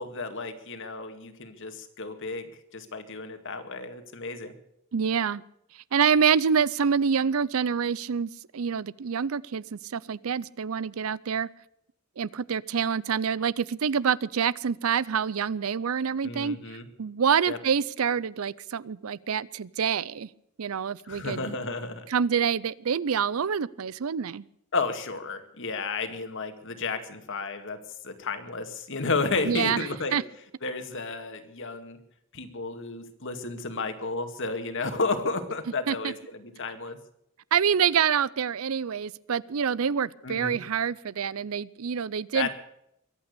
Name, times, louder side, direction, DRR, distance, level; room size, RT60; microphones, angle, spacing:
voice 1, 0.0-4.5 16.2-16.8 17.5-17.6 21.1-22.0 24.7-27.8 28.0-30.1 30.6-32.0 32.3-36.1 36.6-37.0 40.2-40.6 42.3-42.5, left 3 dB, 65° left, 8 dB, 2.1 m, -32 dB
voice 2, 4.9-5.4 5.7-11.5 12.2-20.3 20.6-21.5 22.1-24.5 29.4-30.2 35.9-36.1 37.5-42.5, right 7 dB, 80° right, 21 dB, 0.5 m, -27 dB
23.0 x 8.8 x 6.8 m, 0.77 s
head